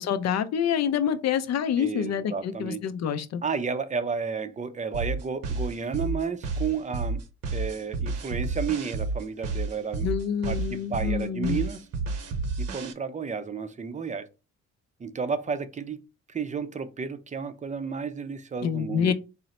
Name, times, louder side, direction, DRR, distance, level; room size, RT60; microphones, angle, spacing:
voice 1, 0.0-3.4 10.0-11.6 18.6-19.1, left 8 dB, 60° left, 0.5 m, -27 dB
voice 2, 1.8-2.8 3.4-7.2 7.5-10.1 10.4-11.8 12.6-14.3 15.0-16.0 16.3-19.1, right 5 dB, 25° right, 0.5 m, -32 dB
sound 1, 4.9-12.9, right 3 dB, 55° right, 0.8 m, -30 dB
3.8 x 2.0 x 4.2 m
cardioid pair, 90°, 30 cm